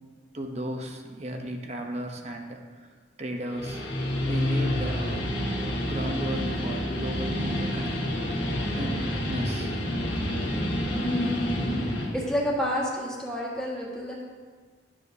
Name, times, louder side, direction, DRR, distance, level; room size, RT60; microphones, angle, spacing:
voice 1, 0.3-2.9 3.2-3.9 4.2-5.2 5.8-8.0 8.8-9.8, right 1 dB, 35° right, 3 dB, 0.8 m, -35 dB
Guitar, 3.4-12.1, left 1 dB, 65° left, 1.6 m, -28 dB
voice 2, 10.9-11.8 12.1-14.2, equal, 5° left, -5 dB, 1.5 m, -29 dB
12.0 x 7.3 x 2.7 m, 1.5 s
head